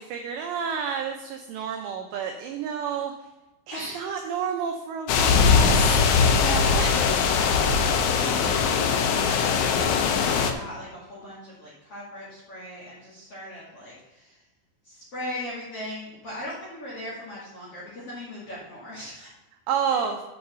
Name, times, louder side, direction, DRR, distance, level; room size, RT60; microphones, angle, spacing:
voice 1, 0.0-3.1 3.7-6.0 6.8-7.0 19.7-20.2, right 7 dB, 85° right, 4 dB, 2.5 m, -30 dB
voice 2, 3.7-4.1 6.2-14.4 14.8-19.3, left 1 dB, 45° left, -7 dB, 2.0 m, -38 dB
sound 1, 5.1-10.5, left 5 dB, 80° left, 3.2 m, -21 dB
7.8 x 5.5 x 6.8 m, 1.1 s
omnidirectional pair, 5.8 m